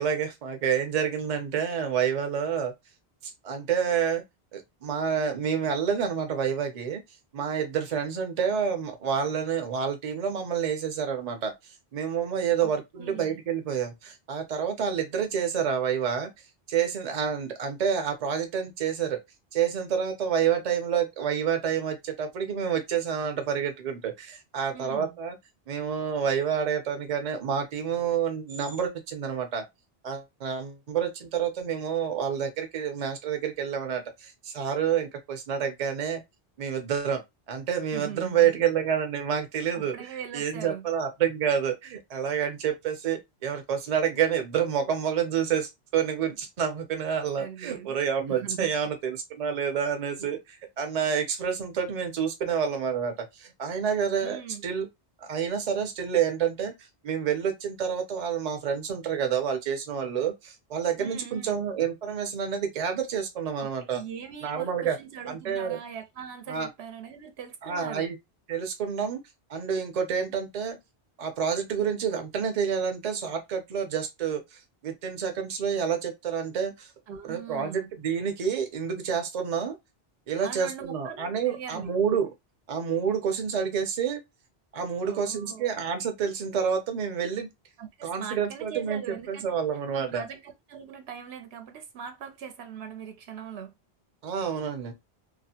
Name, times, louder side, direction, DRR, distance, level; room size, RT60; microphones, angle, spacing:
voice 1, 0.0-2.7 3.2-4.2 4.5-7.0 7.3-11.5 11.9-16.3 16.7-19.2 19.5-25.4 25.7-29.6 30.0-36.2 36.6-37.2 37.5-54.9 55.2-56.7 57.0-64.0 64.4-65.0 65.3-65.8 66.5-66.7 67.6-68.2 68.5-69.2 69.5-70.8 71.2-76.9 77.3-79.8 80.3-82.3 82.7-84.2 84.7-87.5 88.0-90.3 94.2-94.9, right 7 dB, 45° right, 0.6 m, -28 dB
voice 2, 13.0-13.4 24.7-25.2 37.9-38.6 39.7-40.9 47.4-48.0 48.3-48.7 54.2-54.7 61.0-61.6 63.6-68.1 77.1-77.9 80.4-81.9 85.0-85.8 87.8-89.6 89.9-93.7, right 8 dB, 85° right, 0.8 m, -41 dB
2.4 x 2.1 x 2.7 m
omnidirectional pair, 1.1 m